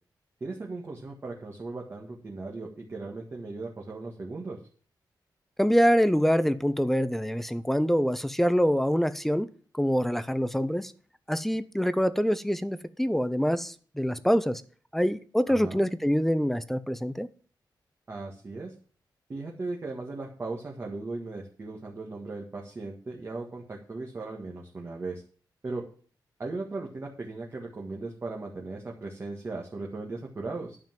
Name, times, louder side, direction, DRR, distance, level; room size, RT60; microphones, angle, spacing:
voice 1, 0.4-4.6 15.5-15.8 18.1-18.7 19.3-25.2 25.6-25.8 26.4-30.8, right 3 dB, 30° right, -1 dB, 1.7 m, -37 dB
voice 2, 5.6-9.5 9.7-10.9 11.3-14.6 14.9-17.3, equal, 5° left, 14 dB, 0.6 m, -25 dB
10.5 x 5.5 x 7.5 m, 0.42 s
wide cardioid pair, 165°, 8 cm